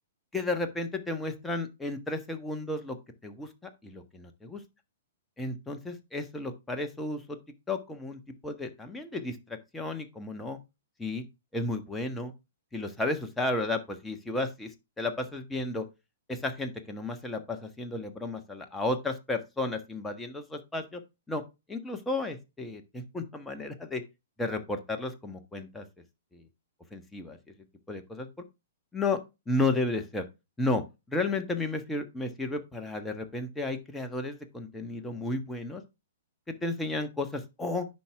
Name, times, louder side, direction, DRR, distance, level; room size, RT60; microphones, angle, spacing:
voice 1, 0.3-3.0 3.2-3.5 3.8-4.6 5.4-7.4 7.7-10.6 11.0-11.2 11.5-12.3 12.7-15.9 16.3-21.0 21.3-21.4 21.7-24.0 24.4-25.8 26.3-26.4 26.9-27.4 27.9-28.3 28.9-29.2 29.5-30.2 30.6-35.8 36.5-37.9, left 2 dB, 5° left, 5 dB, 1.4 m, -33 dB
10.0 x 6.1 x 3.5 m, 0.25 s
figure-of-eight pair, 115°, 0 cm